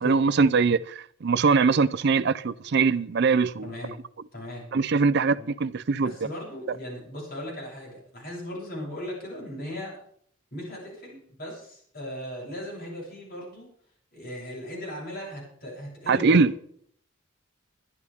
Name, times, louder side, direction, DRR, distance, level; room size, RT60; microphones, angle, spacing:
voice 1, 0.0-3.7 4.7-6.1 6.7-6.8 16.1-16.5, right 4 dB, 55° right, 0.5 m, -22 dB
voice 2, 3.6-3.9 4.3-4.6 5.4-5.5 6.0-10.0 10.5-13.7 14.1-16.5, equal, 45° left, 7.8 m, -37 dB
22.5 x 11.0 x 3.6 m
head